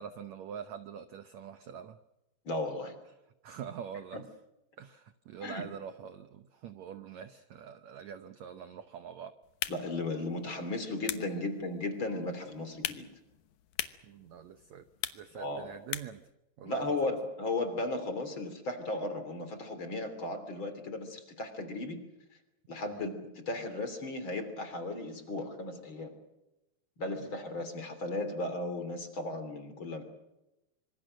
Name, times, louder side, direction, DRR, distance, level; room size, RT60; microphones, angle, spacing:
voice 1, 0.0-2.0 3.4-4.3 4.8-9.3 14.0-14.9 15.1-16.3 16.6-17.1 22.9-23.1, right 8 dB, 80° right, 10 dB, 1.6 m, -45 dB
voice 2, 2.4-2.9 5.4-5.7 9.7-13.1 15.3-15.7 16.6-22.0 22.7-26.1 27.0-30.0, left 2 dB, 35° left, 9 dB, 3.4 m, -35 dB
sound 1, 9.4-16.3, left 12 dB, 65° left, 2.1 m, -42 dB
26.0 x 25.5 x 6.5 m, 0.94 s
omnidirectional pair, 4.6 m